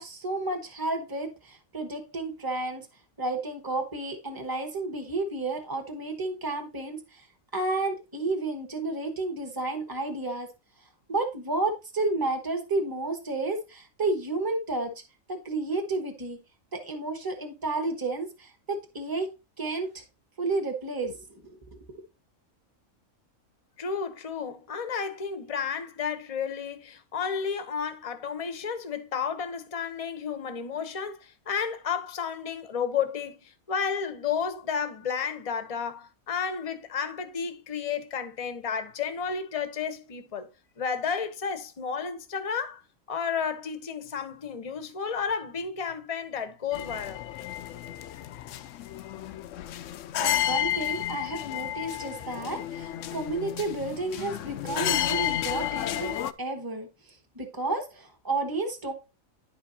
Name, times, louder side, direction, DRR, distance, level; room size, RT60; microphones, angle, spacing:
voice 1, 0.0-2.9 3.2-7.2 7.5-10.5 11.1-14.9 15.3-16.4 16.7-19.3 19.6-20.0 20.4-21.6 21.9-22.0 50.2-56.9 57.3-58.9, right 2 dB, 15° right, 1.4 m, -31 dB
voice 2, 23.8-40.5 40.8-42.8 43.1-47.2, left 6 dB, 30° left, 0.9 m, -32 dB
sound 1, 46.7-56.3, left 13 dB, 70° left, 0.9 m, -32 dB
10.5 x 5.2 x 2.8 m
omnidirectional pair, 1.4 m